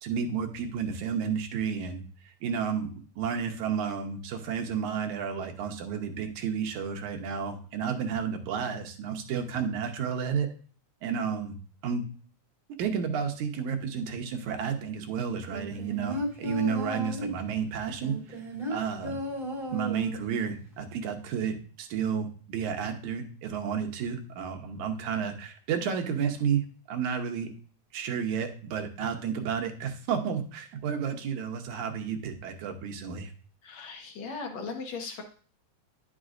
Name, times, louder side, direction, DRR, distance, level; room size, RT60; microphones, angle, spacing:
voice 1, 0.0-2.9 3.2-10.5 11.0-11.5 11.8-12.0 12.8-18.4 18.7-19.2 19.7-27.5 27.9-33.3, right 7 dB, 80° right, 4 dB, 2.3 m, -31 dB
sound 1, 15.5-17.4 18.0-20.4 20.7-20.8, equal, 30° right, 0.9 m, -34 dB
voice 2, 33.6-35.2, left 4 dB, 65° left, 3 dB, 2.3 m, -38 dB
10.5 x 6.1 x 2.5 m, 0.42 s
omnidirectional pair, 3.4 m